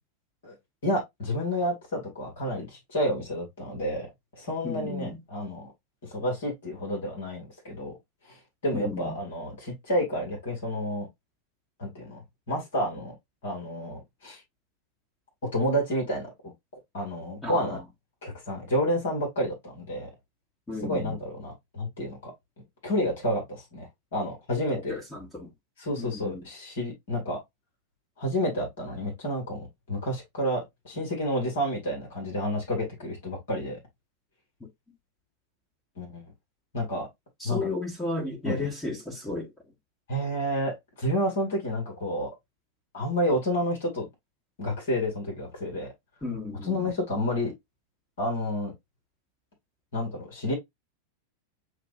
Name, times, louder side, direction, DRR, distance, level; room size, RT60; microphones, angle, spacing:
voice 1, 0.8-4.1 4.4-5.7 6.1-7.9 8.3-11.1 11.8-13.1 13.4-14.4 15.5-16.3 16.9-17.8 18.2-20.1 20.8-22.3 22.8-25.0 25.8-27.4 28.2-33.8 36.0-36.3 36.7-37.1 37.4-37.7 38.4-38.7 40.1-42.3 42.9-44.1 44.6-45.9 46.6-47.5 48.2-48.7 49.9-50.5, equal, 60° left, 2.0 m, -30 dB
voice 2, 4.6-5.2 8.7-9.1 17.4-17.8 20.7-21.1 24.7-25.5 26.0-26.5 37.4-39.5 46.2-46.9, left 2 dB, 10° left, 1.3 m, -34 dB
7.4 x 2.5 x 2.5 m
figure-of-eight pair, 90°, 0 cm